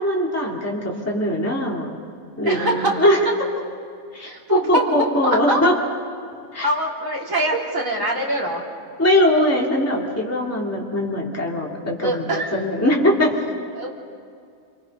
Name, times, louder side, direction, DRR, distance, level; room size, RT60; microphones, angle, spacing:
voice 1, 0.0-1.9 2.4-3.2 4.1-5.7 6.5-6.7 9.0-13.4, left 1 dB, 10° left, -3 dB, 2.6 m, -21 dB
voice 2, 2.5-3.0 4.2-5.6 6.6-8.6 12.0-12.6 13.7-13.9, right 1 dB, 65° right, -3 dB, 3.9 m, -24 dB
28.5 x 24.5 x 5.4 m, 2.4 s
omnidirectional pair, 1.5 m